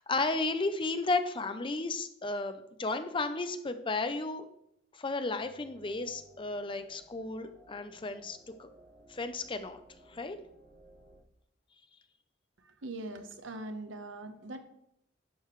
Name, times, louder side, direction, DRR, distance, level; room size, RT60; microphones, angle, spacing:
voice 1, 0.0-4.5 4.9-8.7 9.1-9.8 10.1-10.4, left 3 dB, 25° left, 9 dB, 0.6 m, -33 dB
sound 1, 5.3-11.2, equal, 60° right, 2.0 m, -59 dB
voice 2, 12.8-14.6, right 2 dB, 85° right, 7 dB, 1.1 m, -41 dB
11.0 x 6.9 x 3.2 m, 0.75 s
head